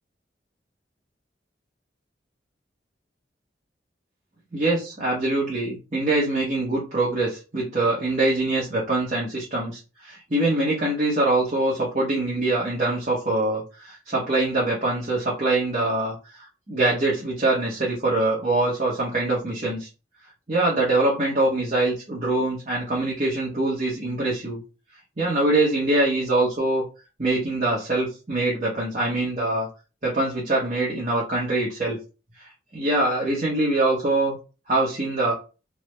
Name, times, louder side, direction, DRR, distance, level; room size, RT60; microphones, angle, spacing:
voice 1, 4.5-19.9 20.5-24.6 25.2-26.8 27.2-29.7 30.0-32.0 32.4-34.4 34.7-35.3, right 2 dB, 40° right, -5 dB, 1.0 m, -24 dB
3.3 x 2.1 x 3.2 m, 0.31 s
head